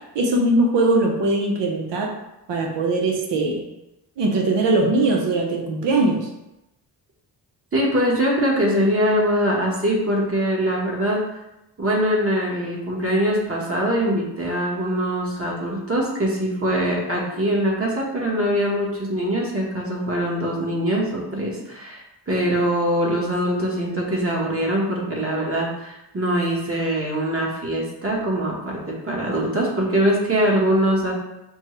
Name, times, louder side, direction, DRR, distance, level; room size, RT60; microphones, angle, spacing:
voice 1, 0.1-2.1 2.5-3.6 4.2-6.3, right 2 dB, 75° right, 0 dB, 0.8 m, -20 dB
voice 2, 7.7-11.2 11.8-31.1, equal, 30° right, -3 dB, 1.2 m, -23 dB
5.3 x 2.2 x 3.1 m, 0.93 s
cardioid pair, 105°, 43 cm